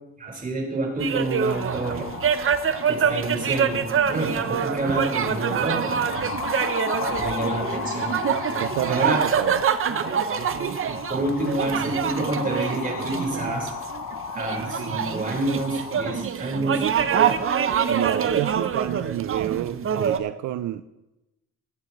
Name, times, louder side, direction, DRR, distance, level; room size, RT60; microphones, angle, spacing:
voice 1, 0.2-2.1 2.9-6.0 7.2-8.1 8.9-9.2 11.1-13.7 14.3-16.8, right 2 dB, 30° right, -1 dB, 4.9 m, -28 dB
sound 1, 1.0-20.2, right 7 dB, 45° right, 0.8 m, -25 dB
sound 2, 1.5-16.3, left 6 dB, 60° left, 1.3 m, -35 dB
voice 2, 8.6-9.6 17.9-20.8, right 13 dB, 80° right, 12 dB, 0.5 m, -29 dB
20.5 x 9.1 x 3.2 m, 0.98 s
cardioid pair, 90°, 30 cm